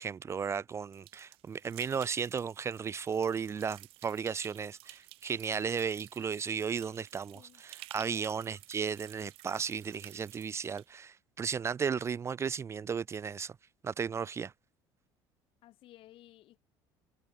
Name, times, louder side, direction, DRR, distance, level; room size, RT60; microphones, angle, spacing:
voice 1, 0.0-13.5 13.8-14.5, right 6 dB, 30° right, 0.4 m, -35 dB
sound 1, 0.9-10.9, right 19 dB, 70° right, 2.6 m, -54 dB
voice 2, 7.9-8.3 15.6-16.6, left 15 dB, 65° left, 7.9 m, -56 dB
supercardioid pair, 100°, 10 cm